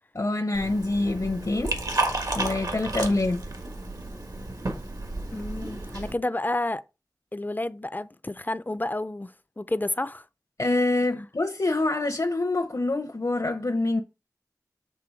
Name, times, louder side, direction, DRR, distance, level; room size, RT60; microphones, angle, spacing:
voice 1, 0.1-1.8 2.3-3.4 10.6-14.0, left 2 dB, 60° left, 0.8 m, -26 dB
Liquid, 0.5-6.1, right 2 dB, 70° right, 1.5 m, -32 dB
voice 2, 5.3-6.8 7.3-10.3, left 2 dB, 25° left, 0.5 m, -30 dB
7.6 x 3.5 x 4.8 m
wide cardioid pair, 55°, 7 cm